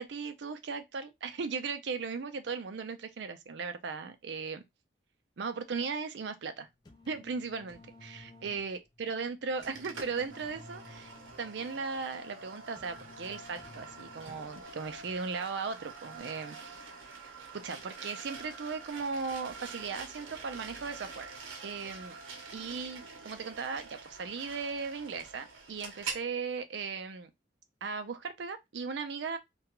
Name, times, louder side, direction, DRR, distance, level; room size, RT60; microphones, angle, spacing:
voice 1, 0.0-4.6 5.4-6.7 7.1-16.8 17.1-21.3 21.6-22.2 22.5-27.3 27.8-29.4, right 5 dB, 65° right, 0.4 m, -37 dB
sound 1, 6.6-14.9, left 2 dB, 20° left, 0.3 m, -55 dB
sound 2, 9.6-26.3, right 4 dB, 90° right, 0.8 m, -46 dB
2.4 x 2.2 x 2.9 m
head